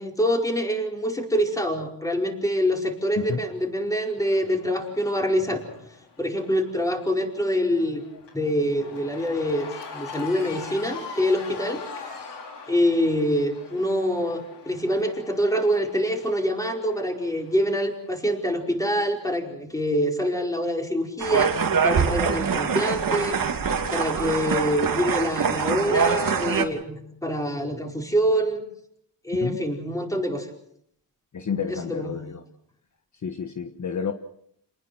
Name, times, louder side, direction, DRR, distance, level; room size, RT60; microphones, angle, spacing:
voice 1, 0.0-5.7 6.2-8.0 8.3-11.8 12.7-23.4 23.9-28.6 29.2-30.5 31.7-32.2, equal, 10° left, 2 dB, 4.9 m, -25 dB
Cheering / Crowd, 3.2-18.5, left 5 dB, 85° left, 4.9 m, -43 dB
sound 1, 21.2-26.6, right 6 dB, 55° right, 2.6 m, -24 dB
voice 2, 31.3-32.4 33.1-34.1, left 6 dB, 45° left, 6 dB, 1.5 m, -30 dB
28.0 x 20.0 x 6.3 m, 0.72 s
cardioid pair, 110°, 41 cm